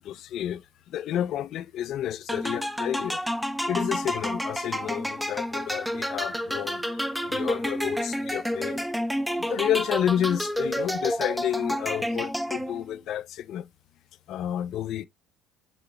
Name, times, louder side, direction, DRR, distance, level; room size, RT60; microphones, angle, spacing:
voice 1, 0.0-3.3 3.7-8.9 9.4-13.7 14.3-15.1, left 11 dB, 60° left, 0.4 m, -30 dB
sound 1, 2.3-13.0, equal, ahead, 0.6 m, -30 dB
8.1 x 2.9 x 2.2 m
hypercardioid pair, 65°, 0 cm